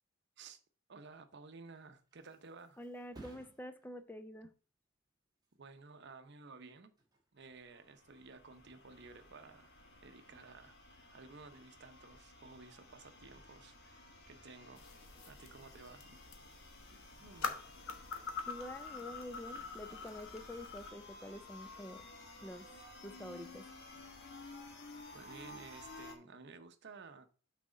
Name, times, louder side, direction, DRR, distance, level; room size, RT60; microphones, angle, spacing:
voice 1, 0.9-2.8 5.6-6.9 7.3-9.7 10.0-14.8 15.3-16.2 16.9-17.6 25.1-27.3, right 4 dB, 55° right, 0.7 m, -54 dB
Thump thud, 1.7-9.0 9.4-9.9, right 2 dB, 20° right, 1.5 m, -62 dB
voice 2, 2.8-4.5 18.5-22.1 22.4-22.7 23.0-23.7, left 1 dB, 10° left, 0.5 m, -47 dB
sound 1, 7.4-26.2, left 2 dB, 55° left, 1.3 m, -55 dB
sound 2, 14.8-20.9, left 5 dB, 75° left, 1.1 m, -45 dB
6.0 x 4.2 x 5.1 m
head